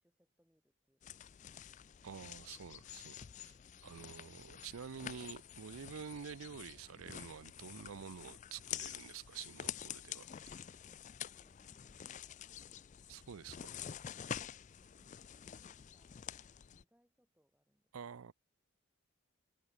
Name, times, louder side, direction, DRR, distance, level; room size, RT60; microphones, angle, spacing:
voice 1, 0.0-2.2 3.6-3.9 10.8-13.0 14.0-18.2, equal, 5° right, 7.2 m, -77 dB
sound 1, 1.0-16.8, left 9 dB, 35° left, 0.3 m, -48 dB
voice 2, 2.0-3.6 3.8-10.3 13.1-13.8 17.9-18.3, right 7 dB, 80° right, 0.5 m, -49 dB
head